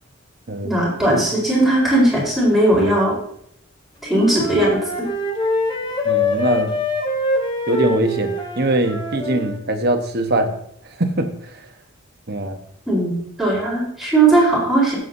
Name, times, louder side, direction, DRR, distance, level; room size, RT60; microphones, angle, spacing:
voice 1, 0.6-3.1 4.0-5.1 12.9-14.9, right 2 dB, ahead, -7 dB, 4.2 m, -18 dB
Wind instrument woodwind instrument, 4.1-9.6, left 2 dB, 20° left, 1.2 m, -24 dB
voice 2, 6.0-6.7 7.7-10.5 11.0-11.3 12.3-12.6, right 2 dB, 50° right, 5 dB, 1.2 m, -21 dB
16.5 x 7.6 x 2.7 m, 0.70 s
head